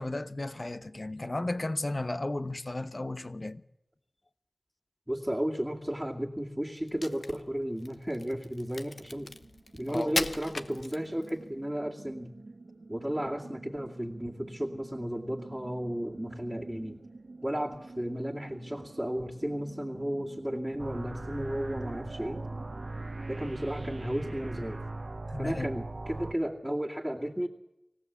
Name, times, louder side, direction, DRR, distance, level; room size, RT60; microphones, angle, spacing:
voice 1, 0.0-3.6 9.9-10.1 25.3-25.7, left 2 dB, 50° left, 1.1 m, -34 dB
voice 2, 5.1-9.3 9.7-12.3 12.9-17.0 17.4-22.4 23.3-24.8 25.4-27.5, equal, 10° right, 2.4 m, -34 dB
Crack, 6.8-11.4, left 3 dB, 80° left, 1.0 m, -37 dB
sound 1, 8.9-24.7, right 3 dB, 80° right, 1.5 m, -49 dB
sound 2, 20.8-26.3, right 2 dB, 60° right, 1.0 m, -39 dB
25.5 x 15.5 x 8.3 m
wide cardioid pair, 45°, 0 cm